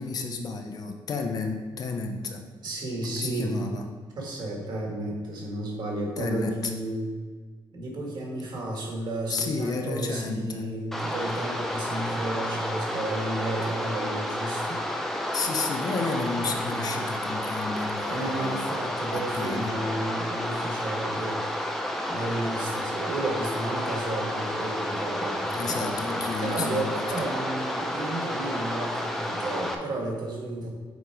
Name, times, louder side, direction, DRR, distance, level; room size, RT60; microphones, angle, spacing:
voice 1, 0.0-2.4 3.1-3.9 6.2-6.5 9.3-10.7 15.3-18.7 19.1-19.8 25.5-27.1, left 4 dB, 45° left, 4 dB, 0.7 m, -32 dB
voice 2, 2.6-3.6 4.2-7.1 7.7-14.8 16.4-16.8 18.1-21.4 22.1-30.7, right 1 dB, 55° right, -1 dB, 1.7 m, -32 dB
sound 1, 10.9-29.7, left 1 dB, 5° left, 0.6 m, -31 dB
7.1 x 3.9 x 4.7 m, 1.5 s
cardioid pair, 150°, 9 cm